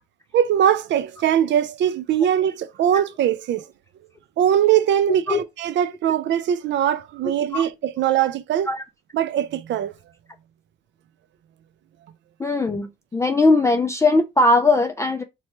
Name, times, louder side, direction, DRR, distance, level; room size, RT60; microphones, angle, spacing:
voice 1, 0.3-3.6 4.4-8.7 9.1-9.9, right 10 dB, 65° right, 0.4 m, -21 dB
voice 2, 12.4-15.2, left 2 dB, 15° left, 0.3 m, -19 dB
3.0 x 2.2 x 3.0 m
cardioid pair, 90°, 20 cm